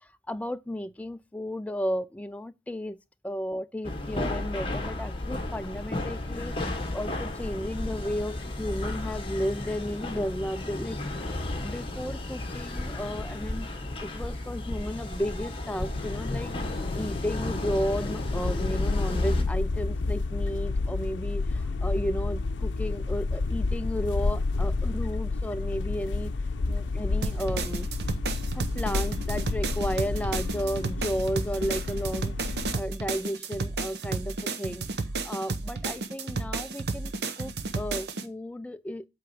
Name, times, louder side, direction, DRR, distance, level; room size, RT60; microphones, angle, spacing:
voice 1, 0.0-3.0 3.2-11.3 11.6-13.7 14.0-16.5 17.0-26.3 26.7-27.9 28.5-32.3 32.7-34.9 35.2-39.0, equal, 10° left, 0.3 m, -33 dB
sound 1, 3.8-19.4, left 1 dB, 30° left, 1.1 m, -33 dB
sound 2, 15.9-32.8, left 3 dB, 85° left, 0.5 m, -30 dB
sound 3, 27.2-38.2, right 3 dB, 60° right, 0.7 m, -32 dB
8.2 x 3.5 x 5.9 m
head